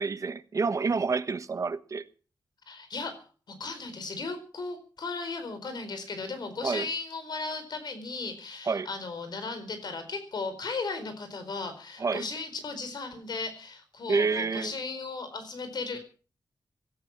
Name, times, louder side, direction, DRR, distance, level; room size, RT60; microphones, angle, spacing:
voice 1, 0.0-2.1 6.6-6.9 8.7-8.9 12.0-12.2 14.1-14.7, right 4 dB, 45° right, 1.2 m, -28 dB
voice 2, 2.7-3.1 3.5-16.0, left 3 dB, 65° left, 4.5 m, -36 dB
17.5 x 13.5 x 6.0 m
wide cardioid pair, 140°, 8 cm